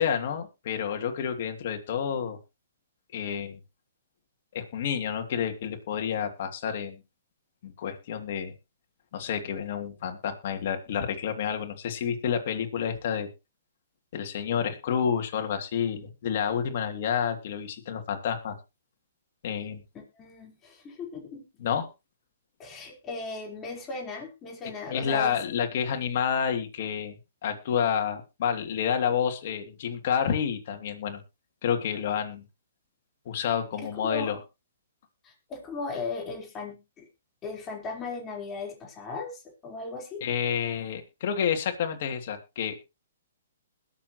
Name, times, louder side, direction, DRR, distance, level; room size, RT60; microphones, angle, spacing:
voice 1, 0.0-2.4 3.1-3.6 4.5-7.0 7.6-8.5 9.1-13.3 14.1-18.6 19.4-19.8 21.6-21.9 24.9-27.2 27.4-31.2 31.6-32.4 33.2-34.4 40.2-42.9, left 8 dB, 55° left, 5 dB, 2.9 m, -29 dB
voice 2, 19.9-21.4 22.6-25.4 33.8-34.4 35.2-37.1 37.4-40.2, left 4 dB, 20° left, 0 dB, 4.5 m, -37 dB
21.0 x 7.5 x 3.2 m, 0.27 s
hypercardioid pair, 140°, 0 cm